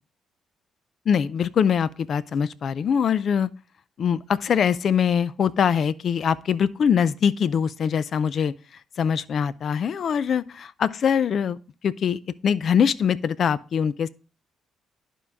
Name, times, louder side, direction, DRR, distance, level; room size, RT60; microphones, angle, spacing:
voice 1, 1.1-3.5 4.0-8.5 9.0-11.6 11.8-14.1, left 7 dB, 55° left, 0.4 m, -23 dB
11.0 x 5.4 x 3.5 m
cardioid pair, 90°, 0 cm